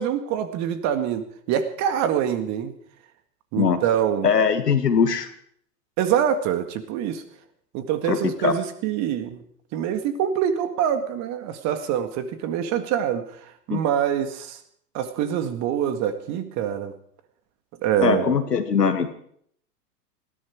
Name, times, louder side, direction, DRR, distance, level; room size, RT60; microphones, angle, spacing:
voice 1, 0.0-2.7 3.5-4.3 6.0-7.2 7.7-9.4 9.7-14.6 14.9-16.9 17.8-18.4, right 9 dB, 35° right, 9 dB, 2.0 m, -25 dB
voice 2, 4.2-5.3 8.0-8.5 13.7-13.8 18.0-19.1, left 6 dB, 75° left, 8 dB, 2.1 m, -21 dB
20.0 x 14.5 x 4.8 m, 0.65 s
figure-of-eight pair, 100°, 48 cm